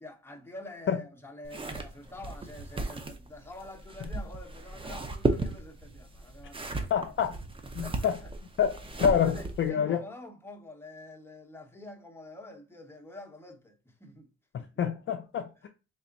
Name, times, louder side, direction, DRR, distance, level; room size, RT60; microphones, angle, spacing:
voice 1, 0.0-7.0 7.8-8.3 9.2-14.3 14.5-14.8, left 2 dB, 10° left, 0.9 m, -47 dB
sound 1, 1.4-9.7, right 3 dB, 20° right, 0.6 m, -35 dB
voice 2, 6.9-7.4 7.7-8.2 8.6-10.0 14.5-15.7, left 8 dB, 40° left, 0.4 m, -27 dB
3.4 x 2.1 x 3.9 m
cardioid pair, 90°, 30 cm